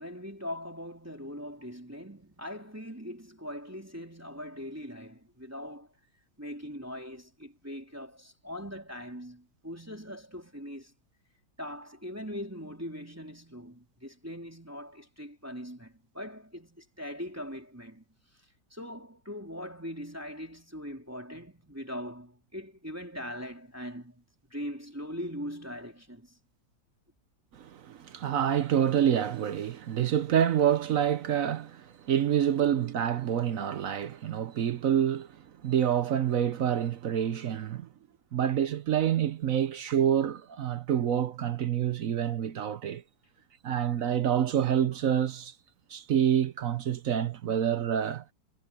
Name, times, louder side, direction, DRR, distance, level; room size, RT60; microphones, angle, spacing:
voice 1, 0.0-5.9 6.4-10.9 11.6-18.0 18.7-24.2 24.5-26.4, equal, 5° right, 3.3 m, -41 dB
voice 2, 27.5-35.3 35.6-37.9 38.3-43.0 43.6-45.5 45.9-48.2, right 9 dB, 60° right, 0.9 m, -27 dB
omnidirectional pair, 2.1 m